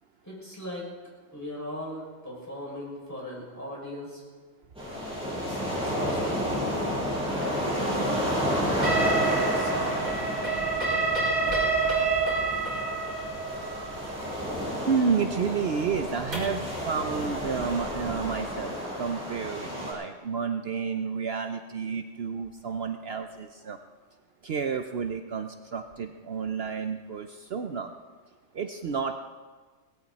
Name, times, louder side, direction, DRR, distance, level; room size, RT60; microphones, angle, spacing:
voice 1, 0.2-0.9 1.3-4.2 5.3-6.5 7.2-9.2 9.5-10.2, equal, 15° left, -5 dB, 6.1 m, -39 dB
sound 1, 4.8-19.9, equal, 5° right, 7.0 m, -31 dB
sound 2, 8.8-16.7, right 4 dB, 45° right, 5.2 m, -28 dB
voice 2, 14.9-23.8 24.4-27.9 28.5-29.2, right 6 dB, 60° right, 6 dB, 0.9 m, -30 dB
19.0 x 17.0 x 4.2 m, 1.4 s
omnidirectional pair, 1.3 m